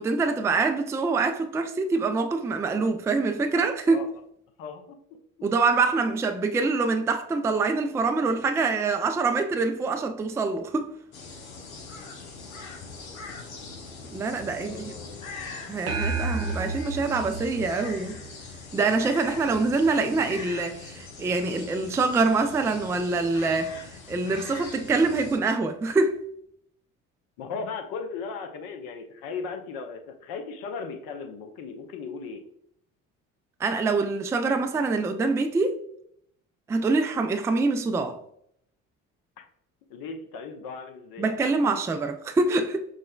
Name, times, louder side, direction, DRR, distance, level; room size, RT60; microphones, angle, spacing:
voice 1, 0.0-4.1 5.4-10.9 14.1-14.9 15.7-18.2 18.7-23.7 24.1-26.2 33.6-35.8 36.7-38.2 41.2-42.9, right 3 dB, 10° right, 0.3 m, -25 dB
voice 2, 4.6-5.0 14.6-15.2 27.4-32.4 39.9-41.3, left 5 dB, 60° left, 0.8 m, -37 dB
sound 1, 11.1-25.4, left 4 dB, 90° left, 0.6 m, -42 dB
sound 2, 15.9-18.5, right 3 dB, 90° right, 0.6 m, -31 dB
6.2 x 2.1 x 2.3 m
hypercardioid pair, 55°, 41 cm